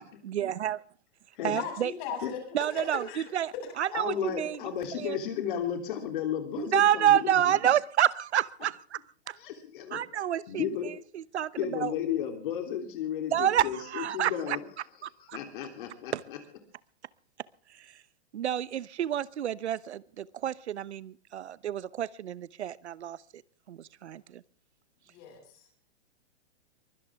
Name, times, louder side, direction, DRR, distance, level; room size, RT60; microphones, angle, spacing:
voice 1, 0.2-0.8 1.4-1.9 2.5-4.6 4.9-5.2 6.6-9.0 9.3-9.4 9.9-11.9 13.3-14.6 15.0-15.4 16.1-16.2 17.7-18.0 18.3-23.2 23.7-24.4, right 10 dB, 85° right, 1.0 m, -29 dB
voice 2, 1.5-2.4 2.7-2.8 3.1-3.2 25.1-25.6, left 7 dB, 35° left, 7.3 m, -38 dB
voice 3, 3.9-7.3 9.4-10.0 10.5-10.9 11.6-14.6 15.3-16.4, left 9 dB, 50° left, 3.3 m, -33 dB
23.0 x 17.5 x 3.6 m
hypercardioid pair, 155°, 33 cm